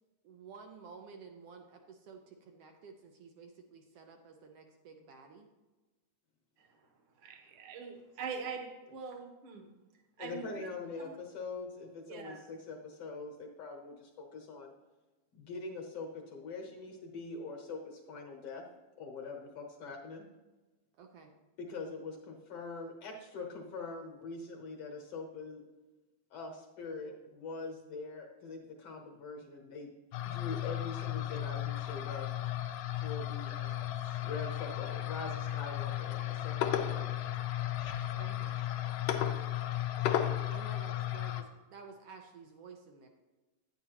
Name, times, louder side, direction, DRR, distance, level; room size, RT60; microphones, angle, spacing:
voice 1, 0.2-5.5 21.0-21.3 38.1-38.6 40.5-43.1, right 5 dB, 75° right, 4 dB, 1.4 m, -52 dB
voice 2, 7.2-9.7 10.2-10.7 11.0-11.1 12.1-12.4 38.2-38.3, right 5 dB, 55° right, 3 dB, 1.7 m, -43 dB
voice 3, 10.2-14.7 15.3-18.6 19.0-20.2 21.6-25.6 26.3-29.9 30.2-32.3 33.0-37.3, left 3 dB, 60° left, 1 dB, 1.8 m, -43 dB
sound 1, 30.1-41.4, left 12 dB, 80° left, 1.4 m, -34 dB
9.6 x 9.5 x 2.9 m, 1.2 s
omnidirectional pair, 3.6 m